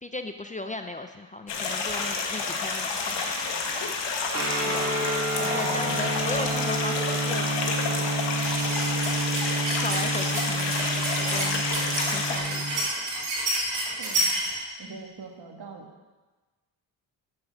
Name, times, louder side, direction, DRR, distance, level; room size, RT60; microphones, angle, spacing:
voice 1, 0.0-3.4 5.4-8.1 9.7-11.7 12.1-12.9 14.9-15.1, left 2 dB, 20° left, 7 dB, 0.5 m, -37 dB
sound 1, 1.5-12.4, left 4 dB, 75° left, 1.4 m, -29 dB
Guitar, 4.3-12.8, right 1 dB, 35° right, 2.0 m, -30 dB
voice 2, 4.6-6.1 14.0-14.3 14.8-15.9, right 5 dB, 60° right, 3 dB, 1.6 m, -43 dB
sound 2, 8.4-14.5, right 1 dB, 80° right, 2.9 m, -30 dB
8.4 x 6.5 x 5.8 m, 1.3 s
cardioid pair, 75°, 43 cm